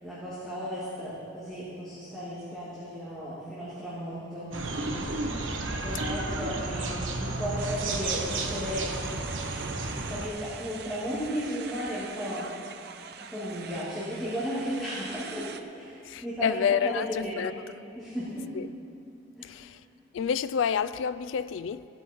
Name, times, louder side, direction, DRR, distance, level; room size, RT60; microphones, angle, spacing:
voice 1, 0.0-4.9 5.6-8.9 9.7-15.5 15.7-15.9 16.2-17.5 17.9-18.5 19.3-19.6, equal, ahead, 2.4 m, -35 dB
sound 1, 4.5-10.3, right 2 dB, 80° right, 1.1 m, -32 dB
sound 2, 7.6-15.6, right 7 dB, 55° right, 0.5 m, -44 dB
voice 2, 16.0-17.5 18.5-18.7 19.4-19.8 20.1-21.9, left 7 dB, 80° left, 0.3 m, -29 dB
16.0 x 8.9 x 4.5 m
head